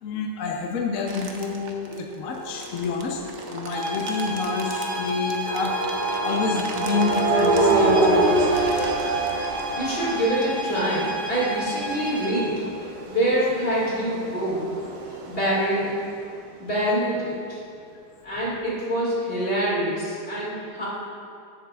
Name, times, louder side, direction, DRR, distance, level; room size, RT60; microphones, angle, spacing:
voice 1, 0.0-3.2 3.5-5.7 6.2-8.5 19.6-19.7, left 5 dB, 60° left, 1 dB, 0.9 m, -28 dB
sound 1, 1.1-10.3, right 4 dB, 55° right, 0.8 m, -42 dB
sound 2, 2.2-5.1 5.5-15.9, right 2 dB, 80° right, 1.5 m, -27 dB
sound 3, 3.7-12.4, equal, 35° right, 1.1 m, -31 dB
voice 2, 9.8-12.6 13.1-14.7 15.3-15.9 16.6-17.6 18.2-20.8, right 1 dB, 35° left, -7 dB, 2.2 m, -25 dB
14.0 x 7.5 x 2.3 m, 2.5 s
omnidirectional pair, 1.9 m